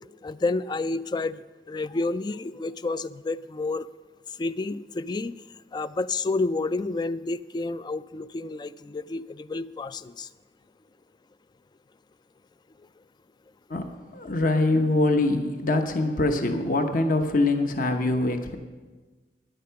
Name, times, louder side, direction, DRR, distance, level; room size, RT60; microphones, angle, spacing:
voice 1, 0.2-1.4 1.7-3.9 4.4-5.3 5.7-10.3, left 3 dB, 25° left, 15 dB, 0.3 m, -29 dB
voice 2, 13.7-18.6, left 2 dB, 50° left, 6 dB, 1.0 m, -24 dB
13.5 x 10.0 x 5.8 m, 1.3 s
head